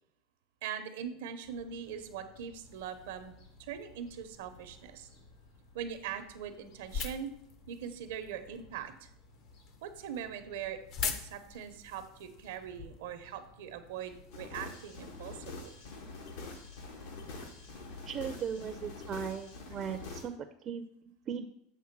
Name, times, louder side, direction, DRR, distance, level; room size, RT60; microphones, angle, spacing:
voice 1, 0.6-3.3 3.6-5.1 5.7-7.3 7.7-9.1 9.8-15.7, right 8 dB, 85° right, 8 dB, 0.8 m, -41 dB
Fowl / Gull seagull, 1.4-20.2, left 3 dB, 65° left, 2.5 m, -59 dB
sound 1, 2.7-15.3, left 6 dB, 45° left, 0.7 m, -45 dB
sound 2, 14.3-20.2, left 3 dB, 80° left, 1.5 m, -45 dB
voice 2, 18.1-21.5, right 7 dB, 35° right, 8 dB, 0.5 m, -38 dB
7.5 x 3.5 x 5.9 m, 0.73 s
supercardioid pair, 135°, 0 cm